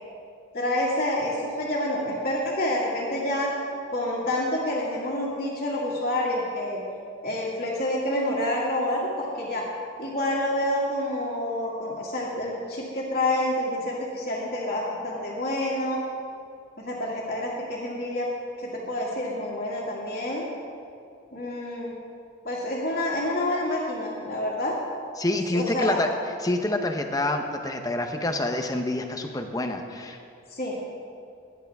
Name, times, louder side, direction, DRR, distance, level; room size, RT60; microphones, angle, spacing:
voice 1, 0.5-3.5 3.9-6.8 7.2-9.6 10.0-16.0 16.8-18.3 18.6-20.5 21.3-21.9 22.4-24.7 25.5-26.0 30.5-30.7, left 1 dB, 45° left, -8 dB, 2.3 m, -28 dB
voice 2, 25.2-26.1 26.4-30.2, left 2 dB, 15° left, 4 dB, 0.8 m, -27 dB
19.0 x 11.0 x 3.5 m, 2.5 s
head